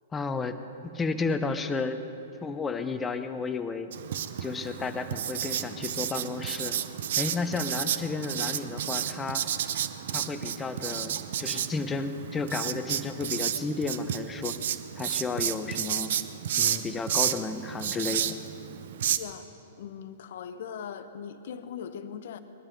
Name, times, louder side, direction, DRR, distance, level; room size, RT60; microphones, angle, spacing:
voice 1, 0.1-0.6 0.9-2.1 2.4-3.9 4.4-6.8 7.2-9.4 10.1-14.6 15.0-16.1 16.6-18.4, left 4 dB, 15° left, 9 dB, 0.9 m, -32 dB
Writing, 3.9-19.2, right 10 dB, 65° right, 0.7 m, -31 dB
voice 2, 19.0-19.5 19.8-22.4, left 7 dB, 60° left, 10 dB, 1.0 m, -40 dB
20.5 x 12.0 x 5.4 m, 2.9 s
hypercardioid pair, 115°, 0 cm